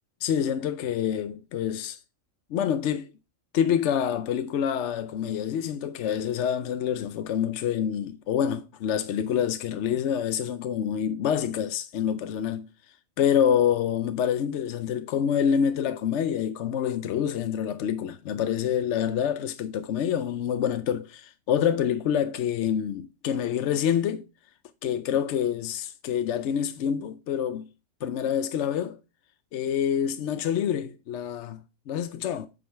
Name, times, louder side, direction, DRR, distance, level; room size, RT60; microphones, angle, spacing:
voice 1, 0.2-2.0 2.5-3.1 3.5-12.7 13.2-24.3 24.8-27.7 28.0-29.0 29.5-32.5, left 9 dB, 70° left, 0.9 m, -27 dB
8.5 x 5.4 x 4.4 m
omnidirectional pair, 1.3 m